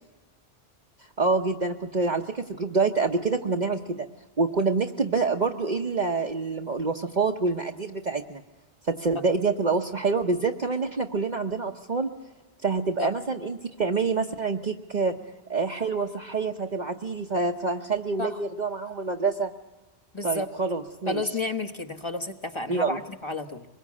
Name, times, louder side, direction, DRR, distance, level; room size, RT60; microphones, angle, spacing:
voice 1, 1.2-4.1 4.4-8.4 8.9-12.1 12.6-15.1 15.5-19.5 20.2-21.2 22.7-23.0, right 4 dB, 45° right, 2 dB, 1.1 m, -26 dB
voice 2, 20.1-20.5 21.1-23.7, left 2 dB, 25° left, 7 dB, 1.3 m, -31 dB
24.0 x 21.5 x 8.5 m, 1.1 s
omnidirectional pair, 1.1 m